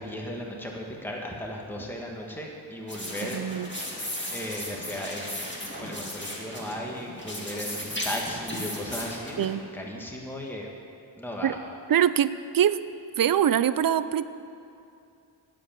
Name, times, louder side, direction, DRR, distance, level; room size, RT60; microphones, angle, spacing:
voice 1, 0.0-3.4 4.3-10.7 11.2-11.5, left 1 dB, 5° left, -1 dB, 1.4 m, -36 dB
sound 1, 2.9-9.5, left 1 dB, 25° left, 2.2 m, -36 dB
voice 2, 3.2-3.7 9.4-9.6 11.4-11.6 11.9-12.8 13.2-14.2, right 10 dB, 50° right, 15 dB, 0.4 m, -23 dB
9.4 x 7.6 x 9.0 m, 2.6 s
wide cardioid pair, 90°, 48 cm